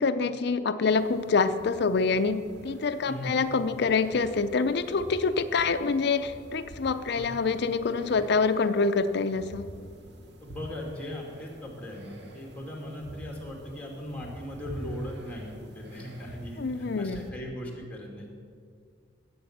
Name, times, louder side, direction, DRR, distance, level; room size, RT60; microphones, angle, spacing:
voice 1, 0.0-9.7 16.6-17.3, left 4 dB, 65° left, 11 dB, 0.5 m, -26 dB
sound 1, 0.9-17.3, equal, 65° right, 1.3 m, -48 dB
voice 2, 10.4-18.3, left 1 dB, 10° left, -1 dB, 2.5 m, -38 dB
11.0 x 8.5 x 7.3 m, 2.1 s
head